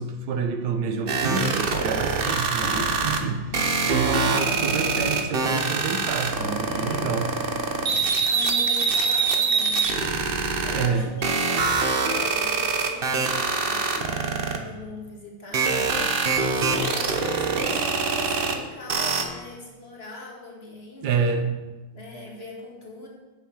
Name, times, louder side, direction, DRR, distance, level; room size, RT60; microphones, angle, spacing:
voice 1, 0.0-7.4 10.7-11.2 21.0-21.7, right 5 dB, 80° right, 7 dB, 1.4 m, -28 dB
sound 1, 1.1-3.2 3.5-10.9 11.2-14.6 15.5-18.6 18.9-19.2, right 4 dB, 45° right, 0.8 m, -24 dB
sound 2, 2.6-8.3, left 5 dB, 65° left, 0.5 m, -39 dB
voice 2, 8.2-9.8 10.6-15.9 16.3-21.3 21.9-23.1, left 2 dB, 35° left, -3 dB, 2.1 m, -41 dB
8.4 x 6.9 x 6.4 m, 1.2 s
omnidirectional pair, 1.8 m